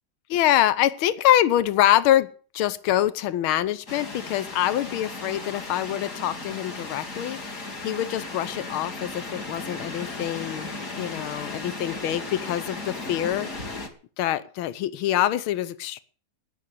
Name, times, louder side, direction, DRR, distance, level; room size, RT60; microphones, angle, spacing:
voice 1, 0.3-2.3 2.5-7.5 7.8-10.7 11.0-13.5 14.2-16.0, left 12 dB, 75° left, 16 dB, 1.7 m, -25 dB
sound 1, 3.9-13.9, left 3 dB, 35° left, 2.6 m, -36 dB
19.0 x 7.5 x 8.3 m, 0.42 s
omnidirectional pair, 2.4 m